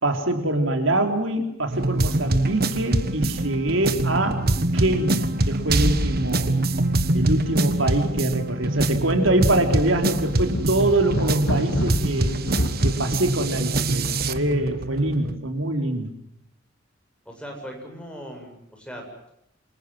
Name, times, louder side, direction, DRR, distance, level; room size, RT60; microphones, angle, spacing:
voice 1, 0.0-4.5 4.7-6.5 7.1-12.3 12.8-16.1, right 1 dB, 75° right, 5 dB, 3.7 m, -24 dB
sound 1, 1.7-15.4, right 2 dB, 50° right, 1.5 m, -24 dB
sound 2, 5.0-5.2 5.5-5.6 6.5-8.0 8.3-8.4 9.0-13.7, left 1 dB, 85° left, 3.3 m, -32 dB
voice 2, 17.2-19.3, equal, 5° left, 1 dB, 7.9 m, -39 dB
28.0 x 25.5 x 7.8 m, 0.76 s
head